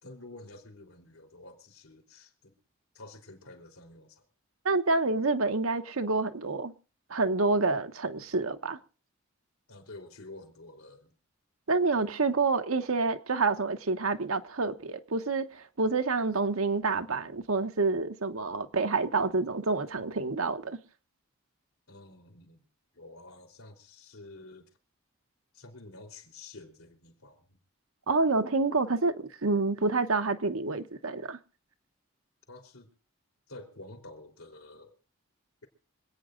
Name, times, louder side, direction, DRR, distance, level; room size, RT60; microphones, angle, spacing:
voice 1, 0.0-2.5 2.9-4.2 9.7-11.1 21.9-22.6 22.9-24.7 25.5-27.6 32.5-32.9 33.5-34.9, left 2 dB, 85° left, 3.4 m, -49 dB
voice 2, 4.6-6.7 7.1-8.8 11.7-20.8 28.1-29.1 29.4-31.4, right 3 dB, 80° right, 1.1 m, -28 dB
25.5 x 9.1 x 3.8 m
head